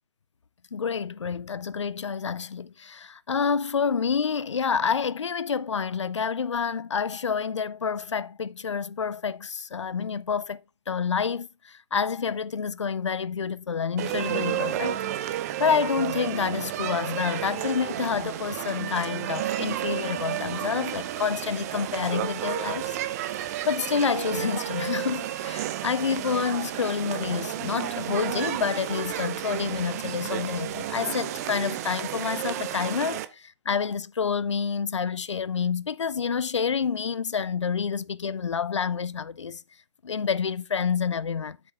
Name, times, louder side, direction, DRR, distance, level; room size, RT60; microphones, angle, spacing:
voice 1, 0.7-10.6 10.9-23.0 23.3-39.6 40.0-41.7, left 6 dB, 75° left, 0.5 m, -28 dB
sound 1, 14.0-33.3, right 12 dB, 35° right, 0.8 m, -32 dB
8.1 x 6.7 x 3.5 m
figure-of-eight pair, 130°, 15 cm